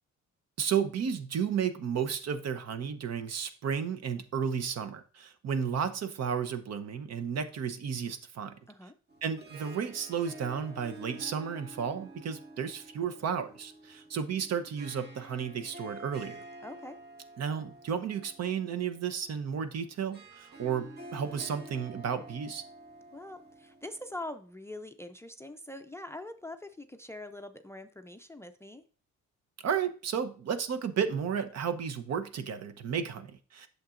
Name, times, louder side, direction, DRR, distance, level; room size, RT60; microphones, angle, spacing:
voice 1, 0.6-8.5 9.2-16.4 17.4-22.6 29.6-33.7, right 7 dB, 60° right, 0.9 m, -33 dB
Harp, 9.1-24.4, right 1 dB, 35° right, 1.4 m, -49 dB
voice 2, 16.6-17.0 23.1-28.8, left 1 dB, 10° left, 0.4 m, -43 dB
8.6 x 6.7 x 2.5 m
cardioid pair, 90°, 30 cm